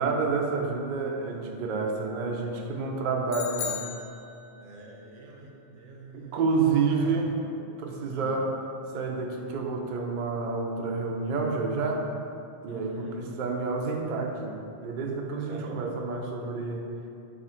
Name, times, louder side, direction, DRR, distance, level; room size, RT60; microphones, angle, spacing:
voice 1, 0.0-3.9 6.1-7.3 7.8-8.5 8.9-12.1 12.6-16.9, right 4 dB, 60° right, 1 dB, 0.5 m, -29 dB
sound 1, 3.3-4.8, left 7 dB, 65° left, 0.9 m, -36 dB
voice 2, 4.6-6.5 6.9-7.2 8.1-8.4 12.7-13.2 15.5-15.8, right 2 dB, 80° right, -1 dB, 1.0 m, -45 dB
3.6 x 3.1 x 4.3 m, 2.6 s
omnidirectional pair, 1.2 m